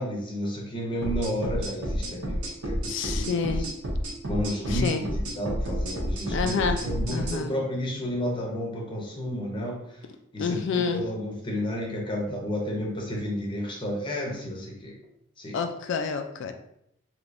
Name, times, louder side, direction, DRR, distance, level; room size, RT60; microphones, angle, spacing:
voice 1, 0.0-3.5 4.3-5.0 5.4-9.8 10.3-14.9 15.4-15.6, equal, 20° left, -1 dB, 0.7 m, -31 dB
sound 1, 1.0-7.4, equal, 80° right, 1.0 m, -30 dB
voice 2, 2.9-3.7 4.7-5.0 6.3-6.8 7.1-7.5 10.4-11.1 15.5-16.5, left 5 dB, 55° left, 6 dB, 0.3 m, -28 dB
3.3 x 2.8 x 2.5 m, 0.76 s
head